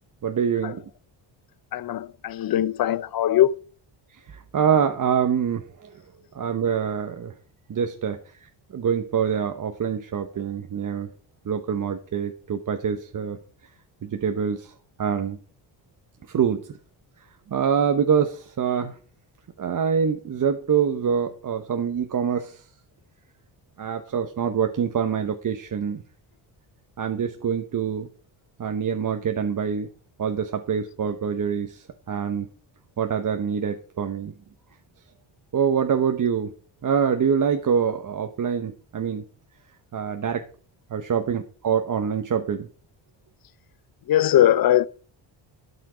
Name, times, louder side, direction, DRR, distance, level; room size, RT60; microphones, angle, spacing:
voice 1, 0.2-0.8 4.3-5.9 6.3-7.3 7.7-8.2 8.7-11.1 11.5-13.4 14.0-14.7 15.0-15.4 16.3-16.6 17.5-18.9 19.6-22.6 23.8-26.0 27.0-28.1 28.6-29.9 30.2-32.5 33.0-34.3 35.5-36.5 36.8-39.2 39.9-40.4 40.9-42.7, right 7 dB, 40° right, 1.0 m, -25 dB
voice 2, 1.7-3.6 44.1-44.9, left 12 dB, 50° left, 0.6 m, -20 dB
12.0 x 7.4 x 5.0 m
cardioid pair, 105°, 46 cm